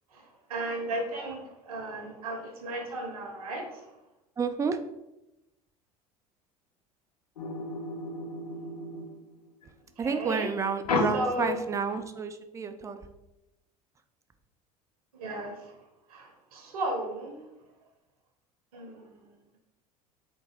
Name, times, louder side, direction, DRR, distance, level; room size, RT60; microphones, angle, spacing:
voice 1, 0.5-3.8 10.0-10.5 11.1-11.6 15.1-15.5 16.1-17.4 18.7-19.1, right 1 dB, 75° right, 3 dB, 0.7 m, -34 dB
voice 2, 4.4-4.8 10.0-13.0, right 5 dB, 15° right, 8 dB, 0.3 m, -30 dB
sound 1, 7.4-9.6 10.8-12.0, left 2 dB, 85° left, 0.5 m, -33 dB
3.8 x 2.5 x 4.0 m, 0.91 s
figure-of-eight pair, 70°, 19 cm